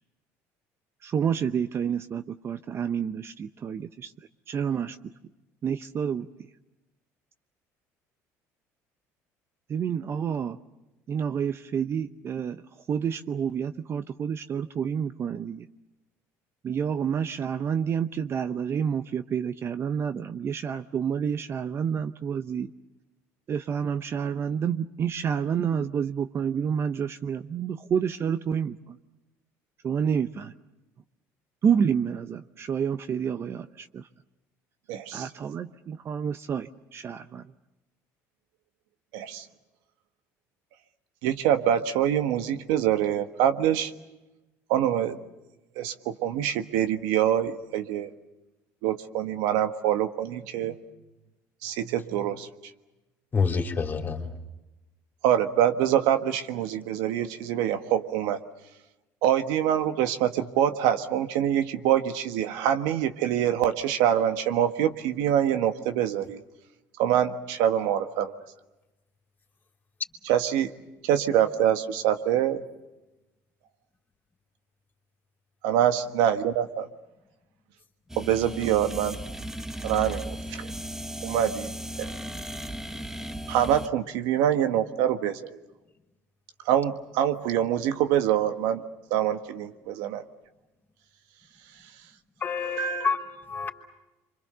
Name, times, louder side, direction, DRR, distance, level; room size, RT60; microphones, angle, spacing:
voice 1, 1.0-5.1 5.6-6.5 9.7-10.6 11.1-15.7 16.6-22.7 23.5-29.0 29.8-30.5 31.6-34.1 35.1-37.5, right 7 dB, 40° right, 0.8 m, -29 dB
voice 2, 34.9-35.3 39.1-39.4 41.2-43.9 44.7-45.2 45.7-48.1 48.8-50.8 51.6-52.5 55.2-58.4 59.2-66.4 67.0-68.3 70.2-70.7 71.0-72.6 75.6-76.9 78.2-79.1 79.8-80.7 81.2-81.7 82.0-82.1 83.5-85.6 86.6-88.8 89.1-90.2 92.8-93.1, right 10 dB, 85° right, 1.5 m, -25 dB
voice 3, 53.3-54.3 92.4-93.7, left 5 dB, 30° left, 3.4 m, -28 dB
sound 1, 78.1-83.9, right 1 dB, 5° right, 1.0 m, -36 dB
27.5 x 25.0 x 6.8 m
cardioid pair, 105°, 7 cm